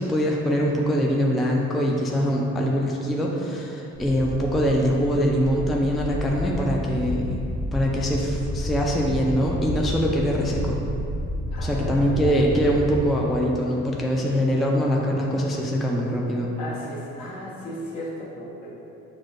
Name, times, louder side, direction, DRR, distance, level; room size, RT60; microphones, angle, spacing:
voice 1, 0.0-7.4 7.7-10.8 11.6-16.5, equal, ahead, -2 dB, 0.3 m, -23 dB
sound 1, 3.9-13.1, left 1 dB, 50° left, 0.6 m, -30 dB
voice 2, 11.5-12.4 16.6-18.7, equal, 65° left, -7 dB, 1.2 m, -36 dB
6.2 x 2.2 x 2.5 m, 2.7 s
cardioid pair, 90°, 30 cm